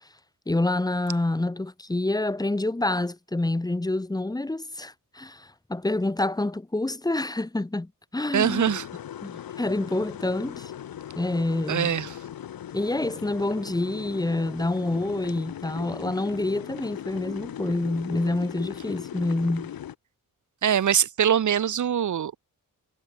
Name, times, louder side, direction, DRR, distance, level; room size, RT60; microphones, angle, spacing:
voice 1, 0.5-8.7 9.2-10.7 11.2-12.0 12.7-19.7, left 2 dB, 10° left, 3.5 m, -27 dB
voice 2, 8.3-8.9 11.7-12.1 20.6-22.4, right 9 dB, 55° right, 2.4 m, -23 dB
sound 1, 8.4-19.9, left 10 dB, 80° left, 3.9 m, -38 dB
wide cardioid pair, 180°, 35 cm